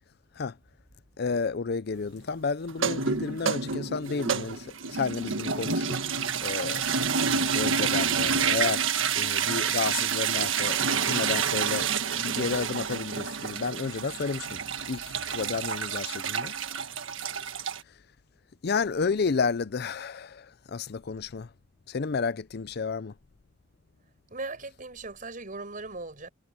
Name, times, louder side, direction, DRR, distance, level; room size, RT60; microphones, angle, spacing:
voice 1, 1.2-6.0 6.4-6.8 7.5-8.8 9.2-11.9 12.2-14.6 14.9-15.0 15.3-16.5 18.6-21.5 21.9-23.1, left 5 dB, 55° left, 0.5 m, -31 dB
sound 1, 2.7-17.8, right 6 dB, 90° right, 1.5 m, -28 dB
voice 2, 24.3-26.3, right 3 dB, 45° right, 5.7 m, -38 dB
head